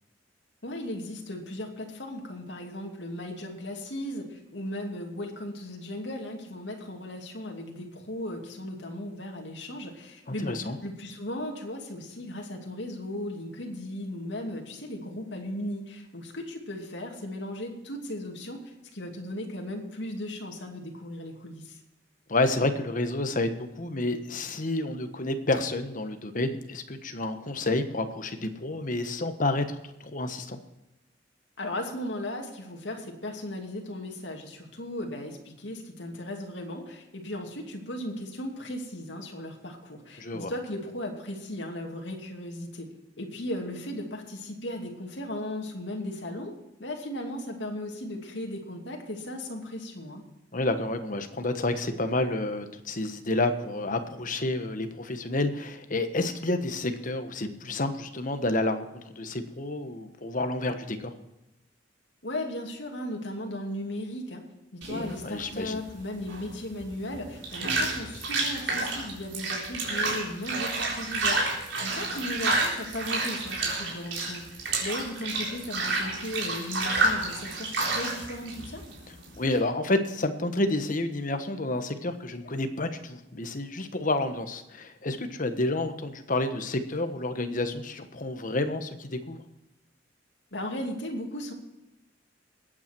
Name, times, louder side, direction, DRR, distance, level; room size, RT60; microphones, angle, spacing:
voice 1, 0.6-10.6 10.8-18.6 18.9-21.8 31.6-42.9 43.2-46.5 46.8-50.2 62.2-64.4 64.7-74.5 74.8-78.8 90.5-91.5, left 1 dB, 70° left, 1 dB, 2.7 m, -36 dB
voice 2, 10.3-10.8 22.3-30.6 40.2-40.5 50.5-61.1 65.2-65.8 79.4-89.4, left 2 dB, 45° left, 8 dB, 1.3 m, -29 dB
sound 1, 64.8-79.6, right 2 dB, 90° right, 3.9 m, -30 dB
21.0 x 8.9 x 4.6 m, 0.96 s
head